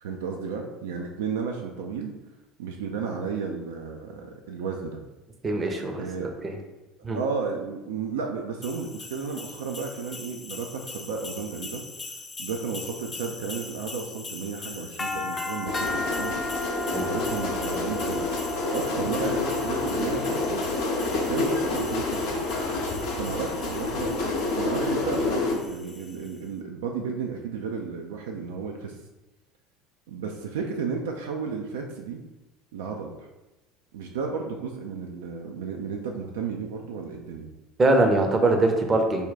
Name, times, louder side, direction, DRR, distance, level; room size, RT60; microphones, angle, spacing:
voice 1, 0.0-2.1 2.6-5.0 6.0-6.3 7.1-11.8 12.4-16.3 16.9-20.6 21.1-22.5 23.2-28.9 30.1-32.2 32.7-33.3 33.9-37.5, right 5 dB, 70° right, 2 dB, 0.3 m, -33 dB
voice 2, 5.4-6.6 7.0-7.2 16.9-17.1 37.8-39.3, right 2 dB, 25° right, 4 dB, 0.6 m, -23 dB
sound 1, 8.6-26.3, left 2 dB, 25° left, 0.5 m, -38 dB
sound 2, 15.6-25.5, left 3 dB, 60° left, 0.7 m, -28 dB
3.4 x 2.2 x 3.9 m, 1.0 s
figure-of-eight pair, 70°, 0 cm